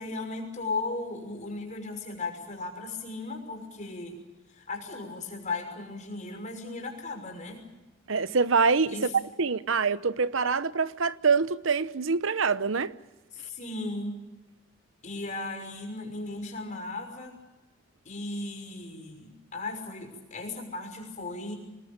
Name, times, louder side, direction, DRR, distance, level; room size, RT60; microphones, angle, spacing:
voice 1, 0.0-4.1 4.5-7.6 8.9-9.1 13.3-14.2 15.0-17.3 18.0-21.6, left 3 dB, 40° left, 6.1 m, -36 dB
voice 2, 8.1-9.0 9.4-12.9, right 5 dB, 75° right, 0.9 m, -25 dB
26.5 x 19.5 x 8.8 m
head